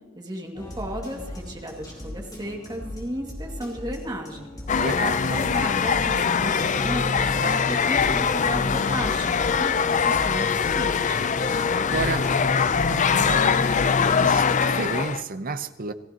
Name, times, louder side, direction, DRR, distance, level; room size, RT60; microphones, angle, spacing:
voice 1, 0.2-4.5 5.3-11.2, equal, 20° right, 1 dB, 2.2 m, -34 dB
sound 1, 0.5-14.3, left 1 dB, 20° left, 4.1 m, -39 dB
sound 2, 4.7-15.2, left 6 dB, 35° left, 0.5 m, -22 dB
voice 2, 4.8-5.2 11.9-13.8 14.2-15.9, right 3 dB, 45° right, 11 dB, 0.8 m, -31 dB
28.0 x 15.0 x 2.9 m, 1.3 s
head